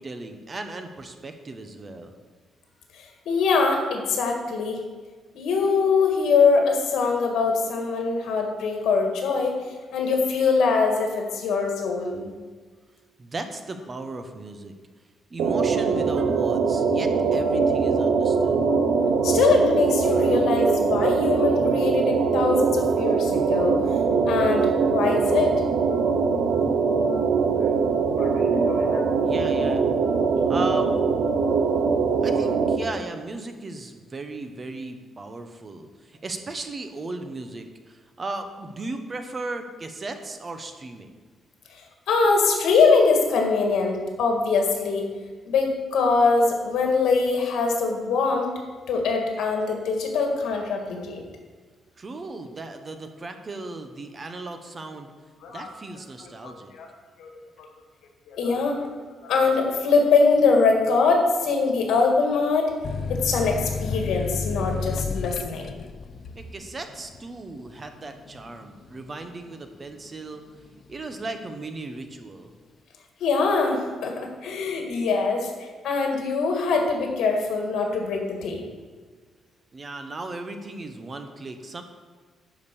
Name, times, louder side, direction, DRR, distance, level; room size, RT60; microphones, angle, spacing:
voice 1, 0.0-2.1 13.2-14.7 15.3-18.6 29.2-29.9 30.5-31.0 32.2-41.1 52.0-55.1 55.5-56.7 66.3-70.4 70.9-72.5 79.7-81.8, right 2 dB, 25° right, 7 dB, 0.8 m, -36 dB
voice 2, 2.9-4.8 5.3-9.6 9.9-12.3 19.2-23.8 24.3-25.5 27.6-27.7 28.2-29.0 41.7-45.1 45.5-48.5 48.9-51.2 55.4-55.7 56.2-56.9 57.2-57.3 57.6-57.7 58.3-58.9 59.2-62.7 63.1-65.7 73.2-78.6, left 4 dB, 80° left, 2 dB, 2.0 m, -23 dB
sound 1, 15.4-32.8, right 5 dB, 70° right, 0.8 m, -22 dB
sound 2, 62.8-70.1 70.5-71.3, left 4 dB, 45° left, 0.5 m, -32 dB
11.0 x 5.1 x 6.9 m, 1.5 s
cardioid pair, 165°, 0 cm